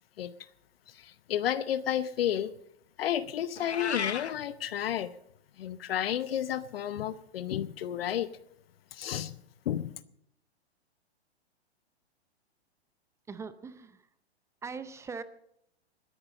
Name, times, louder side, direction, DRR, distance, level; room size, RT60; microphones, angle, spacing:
voice 1, 0.9-2.5 3.0-5.1 5.6-8.3 8.9-9.4 9.7-9.9, left 10 dB, 60° left, 16 dB, 0.8 m, -31 dB
Meow, 3.6-4.3, left 7 dB, 85° left, 0.9 m, -33 dB
voice 2, 13.3-14.1 14.6-15.2, right 5 dB, 10° right, 13 dB, 0.5 m, -41 dB
20.0 x 9.8 x 5.3 m, 0.74 s
hypercardioid pair, 115°, 33 cm